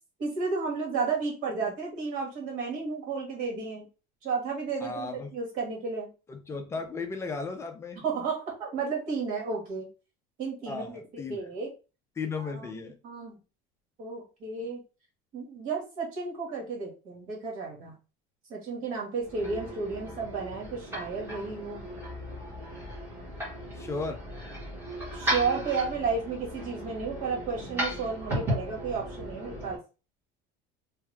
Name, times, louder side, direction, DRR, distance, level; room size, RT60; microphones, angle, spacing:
voice 1, 0.2-3.9 4.2-6.1 8.0-9.9 10.4-11.7 12.4-13.4 14.0-14.8 15.3-17.9 18.5-21.8 25.1-29.8, right 4 dB, 50° right, 0 dB, 1.9 m, -32 dB
voice 2, 4.8-5.3 6.3-8.0 10.6-11.5 12.2-12.9 23.7-24.2, left 4 dB, 15° left, 5 dB, 0.5 m, -35 dB
sound 1, 19.2-29.8, equal, 15° right, 2.0 m, -36 dB
3.5 x 2.7 x 3.3 m, 0.32 s
cardioid pair, 170°, 17 cm